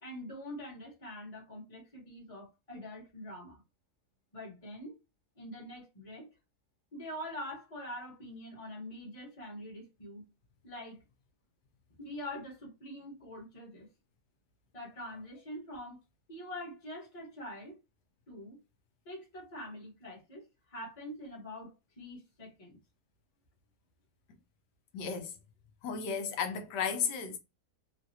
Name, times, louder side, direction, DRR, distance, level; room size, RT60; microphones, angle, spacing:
voice 1, 0.0-3.6 4.3-5.0 5.3-6.3 6.9-10.3 10.6-11.0 12.0-13.9 14.7-16.0 16.3-17.8 18.3-18.6 19.0-22.8, left 1 dB, 25° left, 1.1 m, -44 dB
voice 2, 24.9-25.3 25.8-27.4, left 6 dB, 80° left, 1.2 m, -34 dB
3.2 x 2.3 x 2.7 m
omnidirectional pair, 1.8 m